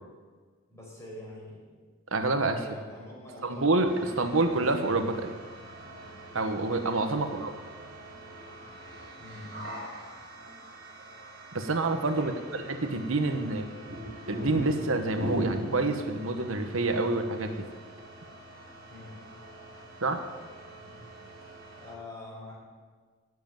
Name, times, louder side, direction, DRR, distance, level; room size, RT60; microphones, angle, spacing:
voice 1, 0.7-1.6 2.6-3.9 7.2-7.5 9.2-9.7 12.1-12.6 18.9-19.2 21.8-22.5, left 1 dB, 15° left, -4 dB, 5.1 m, -45 dB
voice 2, 2.1-2.6 3.4-5.3 6.3-7.5 11.5-12.3 12.9-13.7 14.3-17.6 20.0-20.2, right 2 dB, 80° right, 6 dB, 1.2 m, -27 dB
sound 1, 3.8-21.9, right 1 dB, 55° right, 4.2 m, -42 dB
13.0 x 7.8 x 9.2 m, 1.5 s
head